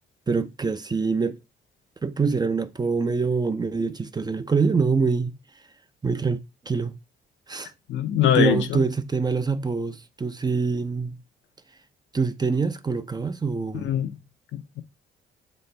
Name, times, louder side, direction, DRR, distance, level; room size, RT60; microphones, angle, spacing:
voice 1, 0.3-1.4 2.0-5.4 6.0-6.4 6.7-6.9 7.5-7.7 8.3-11.2 12.1-13.9, right 4 dB, 20° right, 0.5 m, -25 dB
voice 2, 7.9-8.8 13.8-14.1 14.5-14.8, left 10 dB, 70° left, 0.7 m, -23 dB
7.0 x 4.2 x 3.3 m
cardioid pair, 90°, 20 cm